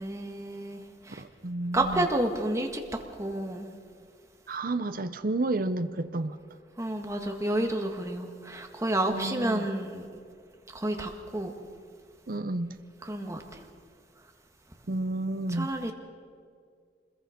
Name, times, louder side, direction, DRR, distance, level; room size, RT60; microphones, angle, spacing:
voice 1, 0.0-1.2 1.7-2.8 3.2-3.7 6.8-10.1 10.7-11.6 13.0-13.4 15.5-15.9, right 1 dB, 15° right, 3 dB, 1.8 m, -30 dB
voice 2, 1.2-2.1 4.5-6.4 9.1-9.7 12.3-12.7 14.9-15.7, right 2 dB, 50° right, 9 dB, 0.8 m, -31 dB
26.0 x 21.5 x 5.2 m, 2.2 s
head